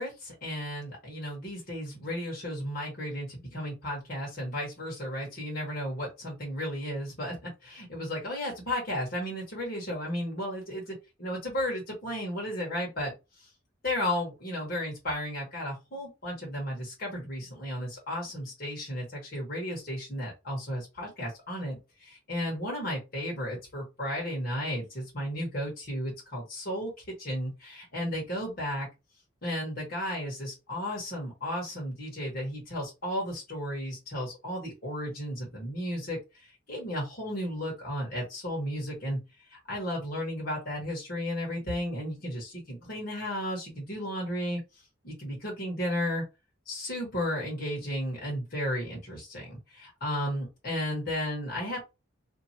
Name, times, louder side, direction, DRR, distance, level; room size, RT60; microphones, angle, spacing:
voice 1, 0.0-13.1 13.4-13.5 13.8-26.9 27.2-28.9 29.4-39.2 39.5-44.6 45.0-46.2 46.7-51.8, equal, 45° left, -3 dB, 1.3 m, -34 dB
2.7 x 2.6 x 2.7 m, 0.25 s
head